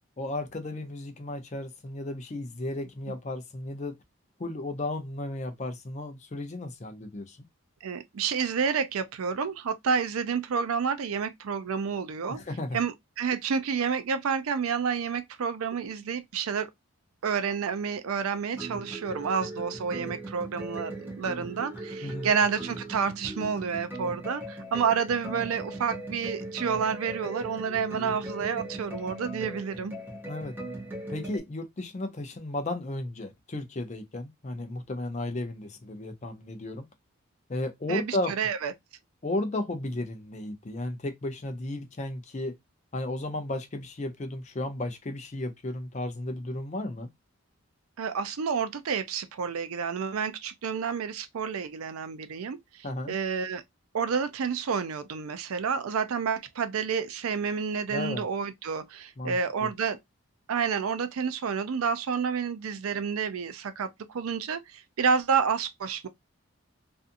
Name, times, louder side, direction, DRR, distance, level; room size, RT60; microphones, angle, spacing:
voice 1, 0.2-4.0 4.4-7.4 12.3-12.8 22.0-22.3 30.3-30.5 31.1-36.9 37.5-38.4 39.2-42.6 42.9-47.1 52.8-53.1 57.9-58.2 59.2-59.7, left 1 dB, 35° left, 0.5 m, -34 dB
voice 2, 7.8-12.4 12.7-16.7 17.2-29.9 37.9-38.7 48.0-53.6 53.9-60.0 60.5-66.1, right 6 dB, 85° right, 0.4 m, -29 dB
sound 1, 18.5-31.4, right 1 dB, 10° right, 0.7 m, -39 dB
2.6 x 2.4 x 2.5 m
head